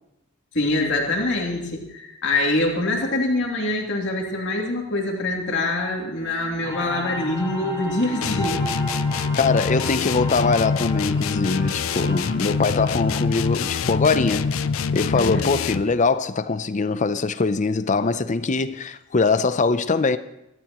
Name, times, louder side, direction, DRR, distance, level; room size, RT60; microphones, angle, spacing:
voice 1, 0.5-8.6 15.1-15.4, left 2 dB, 60° left, 2.7 m, -24 dB
Wind instrument woodwind instrument, 6.2-15.1, right 1 dB, 30° right, 3.2 m, -43 dB
sound 1, 6.6-13.2, equal, 15° left, 4.2 m, -34 dB
sound 2, 8.2-16.0, left 5 dB, 80° left, 0.5 m, -25 dB
voice 2, 9.4-14.5 14.9-20.2, left 4 dB, 35° left, 0.6 m, -22 dB
24.5 x 12.5 x 3.0 m
head